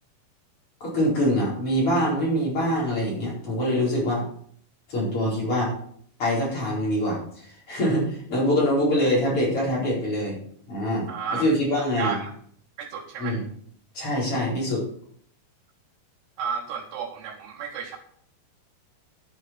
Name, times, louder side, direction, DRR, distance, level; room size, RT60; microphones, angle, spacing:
voice 1, 0.8-4.3 4.9-5.7 6.2-10.4 10.7-12.2 13.2-13.4 13.9-14.8, equal, 35° left, -6 dB, 5.4 m, -24 dB
voice 2, 11.1-11.5 11.7-12.3 12.8-13.4 16.4-18.0, right 6 dB, 85° right, 0 dB, 3.1 m, -32 dB
11.0 x 6.6 x 6.1 m, 0.62 s
omnidirectional pair, 4.5 m